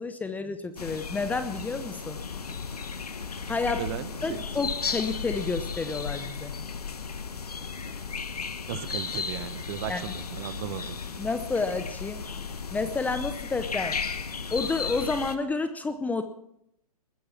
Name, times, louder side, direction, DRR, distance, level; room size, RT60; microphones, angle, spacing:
voice 1, 0.0-2.2 3.5-3.8 4.2-6.5 9.9-10.0 11.2-12.2 12.7-14.0 14.5-16.2, left 3 dB, 10° left, 10 dB, 0.8 m, -30 dB
sound 1, 0.8-15.4, left 5 dB, 80° left, 1.3 m, -35 dB
voice 2, 3.7-4.4 8.7-11.0, right 11 dB, 40° right, 13 dB, 1.3 m, -36 dB
20.0 x 10.0 x 5.9 m, 0.76 s
hypercardioid pair, 125°, 19 cm